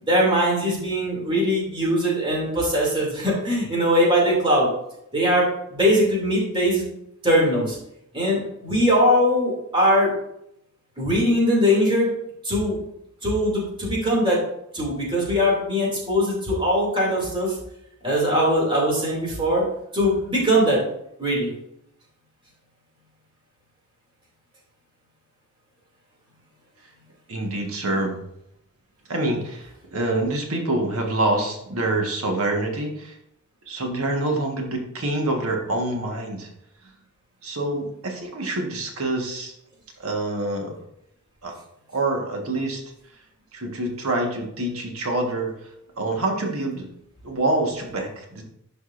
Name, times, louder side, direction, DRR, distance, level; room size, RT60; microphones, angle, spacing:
voice 1, 0.0-4.7 5.1-6.8 7.2-7.8 8.1-10.1 11.0-12.1 12.4-12.8 13.2-14.4 14.7-17.5 18.0-19.6 19.9-20.8 21.2-21.5, equal, 25° right, -4 dB, 2.8 m, -21 dB
voice 2, 27.3-28.2 29.1-33.2 33.7-36.5 37.4-39.5 40.0-40.7 41.4-41.5 41.9-42.8 43.5-45.5 46.0-46.9 47.2-48.4, right 2 dB, 70° right, 1 dB, 1.5 m, -26 dB
11.5 x 5.2 x 2.6 m, 0.77 s
head